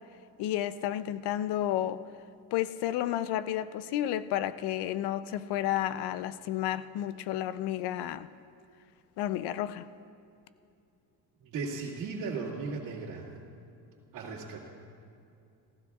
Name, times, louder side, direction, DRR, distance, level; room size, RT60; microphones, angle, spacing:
voice 1, 0.4-2.0 2.5-8.3 9.2-9.9, left 12 dB, 80° left, 0.6 m, -31 dB
voice 2, 11.4-13.3 14.1-14.7, right 4 dB, 55° right, 2.3 m, -36 dB
27.0 x 15.5 x 2.4 m
cardioid pair, 155°, 40 cm